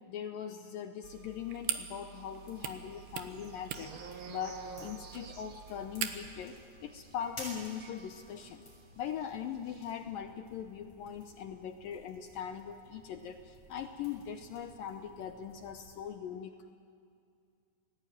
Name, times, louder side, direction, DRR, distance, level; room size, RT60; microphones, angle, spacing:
voice 1, 0.0-3.9 4.3-8.6 9.0-16.7, left 8 dB, 75° left, 7 dB, 2.3 m, -41 dB
zippo lighter, 1.0-6.5, right 10 dB, 80° right, 3.3 m, -42 dB
sound 1, 2.1-8.8 9.1-9.3 9.5-9.8, right 5 dB, 55° right, 1.5 m, -51 dB
sound 2, 2.4-16.0, left 1 dB, 30° left, 7.5 m, -55 dB
29.0 x 19.0 x 9.0 m, 2.3 s
omnidirectional pair, 4.6 m